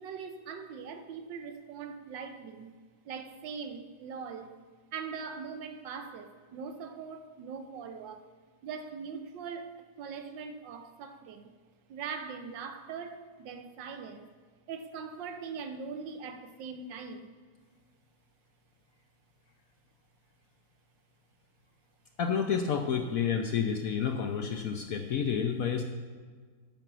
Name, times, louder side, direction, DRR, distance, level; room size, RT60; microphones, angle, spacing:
voice 1, 0.0-2.8 3.0-4.6 4.9-8.2 8.6-11.5 11.9-14.3 14.7-17.3, right 5 dB, 75° right, 8 dB, 1.4 m, -41 dB
voice 2, 22.2-25.8, left 7 dB, 65° left, 5 dB, 0.9 m, -30 dB
8.9 x 6.8 x 6.1 m, 1.5 s
omnidirectional pair, 2.0 m